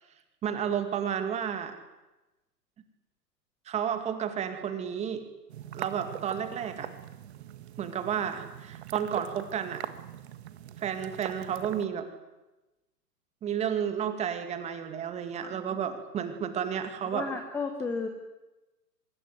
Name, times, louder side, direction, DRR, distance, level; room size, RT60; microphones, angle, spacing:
voice 1, 0.4-1.7 3.7-5.2 5.7-6.9 7.8-9.8 10.8-12.1 13.4-17.3, right 8 dB, 15° right, 8 dB, 2.3 m, -31 dB
sound 1, 5.5-11.9, right 11 dB, 40° right, 1.7 m, -42 dB
voice 2, 17.1-18.1, left 4 dB, 5° left, 7 dB, 1.1 m, -33 dB
25.0 x 22.5 x 9.5 m, 1.1 s
hypercardioid pair, 140°, 49 cm